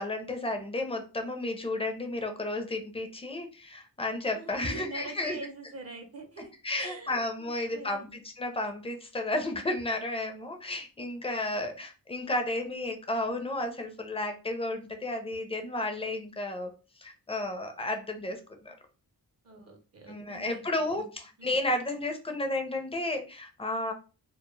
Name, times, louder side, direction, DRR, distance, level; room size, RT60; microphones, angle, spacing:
voice 1, 0.0-5.4 6.6-16.7 17.0-18.7 20.1-23.9, left 2 dB, 15° left, 5 dB, 0.5 m, -32 dB
voice 2, 4.2-6.5 6.8-8.0 19.4-20.7 20.9-21.1, right 3 dB, 40° right, 4 dB, 0.5 m, -44 dB
2.2 x 2.0 x 3.0 m, 0.33 s
wide cardioid pair, 95°, 38 cm